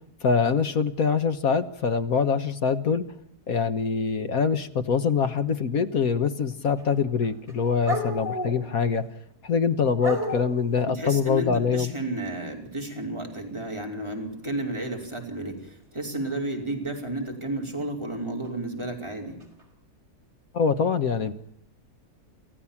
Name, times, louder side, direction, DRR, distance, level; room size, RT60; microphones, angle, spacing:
voice 1, 0.2-3.0 3.5-9.1 9.4-11.9 20.5-21.3, left 6 dB, 65° left, 11 dB, 1.7 m, -24 dB
sound 1, 6.5-7.0 7.2-9.0 10.0-10.6 14.7-15.0 16.2-16.3 18.4-18.5 19.4-19.6, equal, 45° right, 5.4 m, -32 dB
voice 2, 10.8-19.4, right 1 dB, 15° right, 1 dB, 5.1 m, -32 dB
28.0 x 15.5 x 7.2 m, 0.73 s
omnidirectional pair, 1.6 m